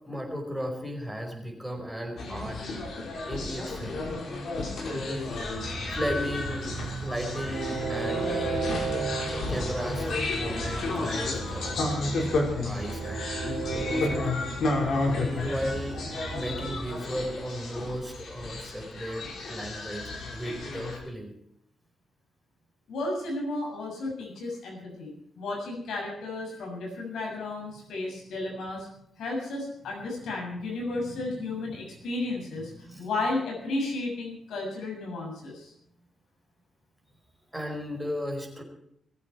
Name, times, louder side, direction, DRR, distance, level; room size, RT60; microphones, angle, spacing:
voice 1, 0.0-2.6 3.2-4.0 4.8-5.3 5.9-8.7 9.5-12.3 12.6-13.2 13.7-14.3 15.1-16.0 16.3-21.3 30.2-30.3 30.9-31.8 32.8-33.1 37.5-38.6, equal, ahead, 1 dB, 4.7 m, -35 dB
sound 1, 2.2-21.0, left 2 dB, 55° left, 5.1 m, -32 dB
Train, 5.6-16.8, right 4 dB, 90° right, 2.7 m, -35 dB
voice 2, 22.9-28.9 29.2-32.7 33.0-35.7, left 2 dB, 80° left, -1 dB, 7.3 m, -33 dB
20.5 x 14.5 x 4.7 m, 0.73 s
wide cardioid pair, 165°, 0 cm